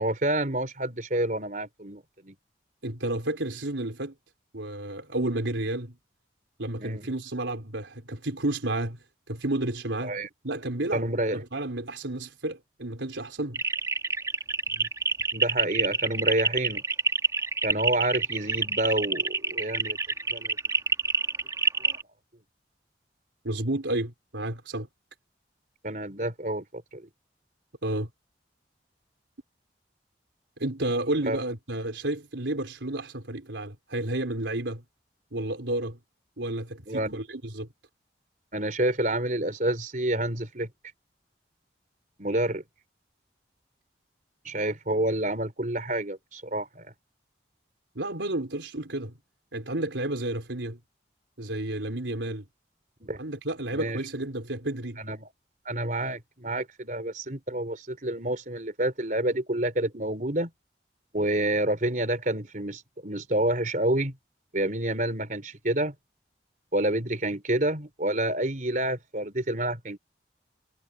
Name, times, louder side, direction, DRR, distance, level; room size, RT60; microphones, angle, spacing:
voice 1, 0.0-2.3 6.8-7.1 10.0-10.3 10.9-11.4 14.7-14.9 15.3-16.8 17.6-20.0 20.3-20.6 21.8-22.0 25.8-27.1 31.3-31.4 36.9-37.2 38.5-40.7 42.2-42.6 44.4-46.9 53.0-53.2 53.7-54.0 55.0-55.3 55.7-60.5 61.1-64.1 64.5-65.9 66.7-70.0, right 1 dB, 45° right, 4.0 m, -28 dB
voice 2, 2.8-4.1 4.5-6.0 6.6-9.0 9.3-10.2 10.4-13.6 23.4-24.9 27.8-28.1 30.6-34.8 35.3-36.0 36.4-37.7 47.9-49.2 49.5-50.8 51.4-52.4 53.2-55.0, right 1 dB, 85° right, 4.3 m, -31 dB
sound 1, 13.5-22.0, right 4 dB, 20° right, 2.1 m, -26 dB
head